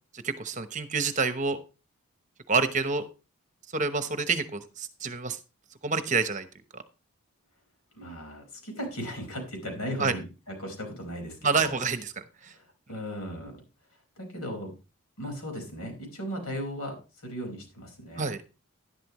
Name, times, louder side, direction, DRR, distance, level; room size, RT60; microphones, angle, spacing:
voice 1, 0.2-1.6 2.5-3.0 3.7-5.4 5.8-6.5 10.0-10.1 11.4-12.0 18.2-18.4, right 4 dB, 35° right, 10 dB, 0.9 m, -27 dB
voice 2, 7.9-11.8 12.4-13.6 14.2-14.7 15.2-18.2, equal, 85° left, 3 dB, 4.9 m, -37 dB
11.5 x 11.0 x 3.1 m, 0.31 s
head